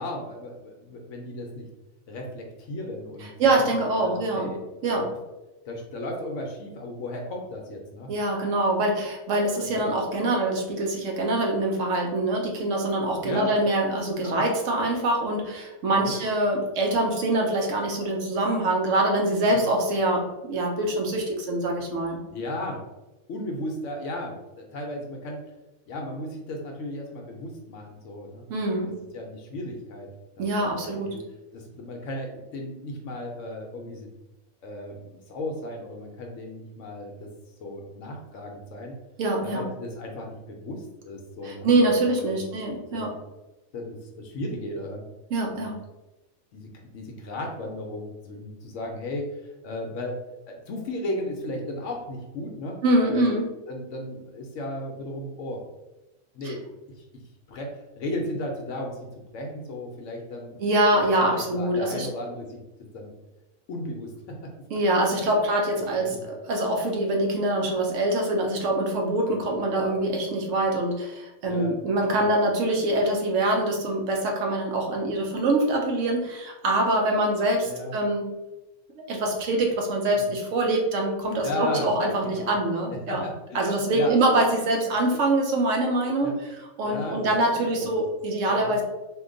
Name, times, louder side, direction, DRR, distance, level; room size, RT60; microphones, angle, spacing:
voice 1, 0.0-1.7 2.1-3.3 3.7-4.6 4.9-5.1 5.7-8.1 13.2-13.5 14.2-14.4 16.0-16.2 19.5-19.7 22.3-22.8 23.3-25.4 25.9-28.4 29.1-30.1 30.4-31.2 31.5-34.1 34.6-37.3 37.6-38.9 39.4-41.7 42.2-42.4 42.9-43.1 43.7-45.1 45.5-45.7 46.5-49.3 49.6-50.2 50.5-53.2 53.7-55.6 56.3-56.7 57.0-57.1 57.5-59.0 59.3-60.6 60.9-62.6 62.9-63.1 63.7-64.5 65.3-65.4 65.9-66.2 71.5-71.8 72.1-72.3 77.7-77.9 80.2-80.3 81.4-81.9 82.2-82.5 83.1-84.1 86.2-86.3 86.8-87.3 87.6-88.0 88.5-88.8, left 1 dB, 70° left, 1 dB, 0.9 m, -35 dB
voice 2, 3.4-4.5 4.8-5.1 8.1-22.2 28.5-28.9 30.4-31.1 39.2-39.7 41.4-43.1 45.3-45.8 52.8-53.5 56.4-56.5 60.6-62.1 64.7-78.2 79.1-83.2 83.5-86.3 86.8-88.8, right 1 dB, 70° right, 1 dB, 0.9 m, -24 dB
2.8 x 2.2 x 3.7 m, 1.0 s
omnidirectional pair, 1.4 m